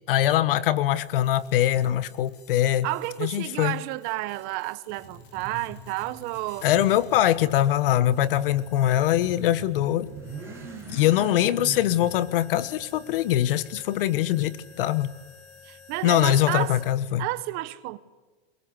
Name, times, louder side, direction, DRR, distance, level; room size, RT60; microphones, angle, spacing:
voice 1, 0.1-2.9 3.2-3.7 6.6-10.1 10.9-15.1 16.0-17.2, left 12 dB, 60° left, 1.4 m, -23 dB
sound 1, 0.6-16.9, left 5 dB, 35° left, 4.4 m, -52 dB
voice 2, 2.8-6.7 15.6-16.8 17.2-18.0, right 19 dB, 30° right, 0.9 m, -31 dB
Motorcycle / Accelerating revving vroom, 4.9-13.8, right 3 dB, 10° right, 7.1 m, -43 dB
27.0 x 22.5 x 8.4 m
supercardioid pair, 170°, 31 cm